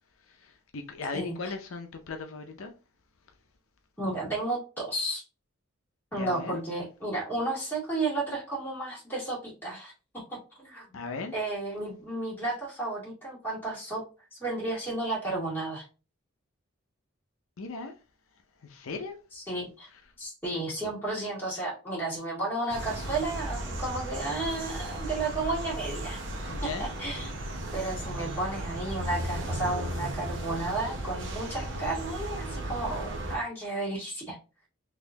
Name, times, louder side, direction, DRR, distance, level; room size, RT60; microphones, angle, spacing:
voice 1, 0.4-2.7 6.2-6.6 10.9-11.3 17.6-17.9 18.6-19.2 26.5-26.9, left 4 dB, 75° left, 0.6 m, -37 dB
voice 2, 4.0-5.2 6.1-9.9 10.3-11.0 11.3-14.0 14.3-15.8 19.3-19.9 20.2-26.2 26.6-27.3 27.7-34.4, right 2 dB, 10° left, 2.0 m, -33 dB
sound 1, 22.7-33.4, right 1 dB, 55° right, 0.7 m, -35 dB
4.0 x 2.9 x 2.7 m
head